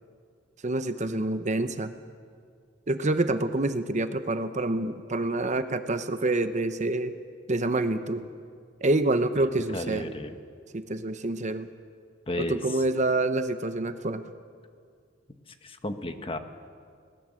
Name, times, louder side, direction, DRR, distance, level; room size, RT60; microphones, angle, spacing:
voice 1, 0.6-1.9 2.9-7.1 7.5-8.2 8.8-10.1 10.7-11.7 12.4-14.2, right 2 dB, 40° right, 10 dB, 0.9 m, -27 dB
voice 2, 9.3-10.4 12.3-12.6 15.6-16.4, left 1 dB, 30° left, 7 dB, 1.2 m, -33 dB
22.0 x 19.0 x 7.7 m, 2.1 s
head